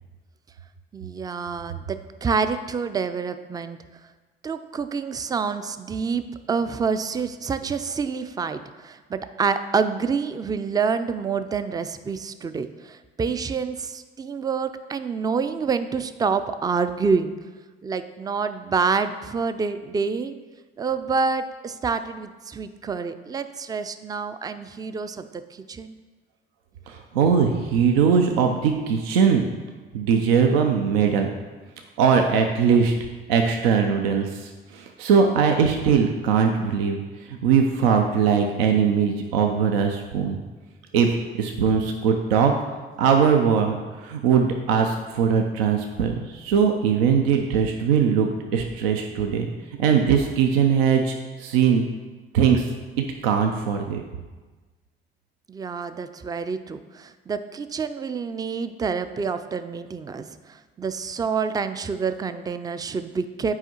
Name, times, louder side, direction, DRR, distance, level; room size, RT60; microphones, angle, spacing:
voice 1, 0.9-3.8 4.4-17.3 17.8-20.3 20.8-25.9 55.5-63.5, right 5 dB, 15° right, 10 dB, 0.3 m, -27 dB
voice 2, 26.9-29.5 29.9-31.3 32.0-32.9 33.3-40.4 40.9-41.1 41.4-42.5 43.0-49.5 49.8-51.9 52.3-52.7 53.0-54.0, right 6 dB, 75° right, 3 dB, 0.5 m, -21 dB
7.7 x 4.7 x 2.9 m, 1.3 s
figure-of-eight pair, 45°, 30 cm